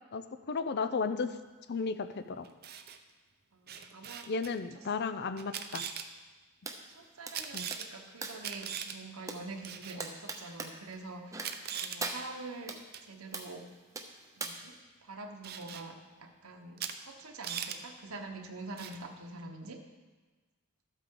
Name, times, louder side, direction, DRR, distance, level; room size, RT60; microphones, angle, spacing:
voice 1, 0.1-1.4 1.7-2.5 4.3-5.8 7.5-7.7, left 4 dB, 50° left, 10 dB, 0.6 m, -34 dB
Camera, 2.4-3.0 3.7-4.5 5.4-6.1 7.3-7.9 8.4-9.0 9.6-10.0 10.9-11.0 11.4-12.0 12.9-13.1 15.4-15.8 16.8-17.0 17.2-17.8 18.8-19.0, right 8 dB, 45° right, 0.7 m, -40 dB
voice 2, 3.5-4.2 5.6-5.7 6.9-11.4 11.7-13.6 14.4-14.8 15.0-19.8, right 3 dB, 70° right, 4 dB, 1.1 m, -45 dB
sound 1, 6.6-6.8 7.3-8.5 9.3-9.4 10.0-10.7 11.3-11.7 12.0-12.8 13.3-13.5 13.9-14.5, right 3 dB, 15° right, 0.8 m, -40 dB
13.5 x 8.3 x 3.8 m, 1.3 s
head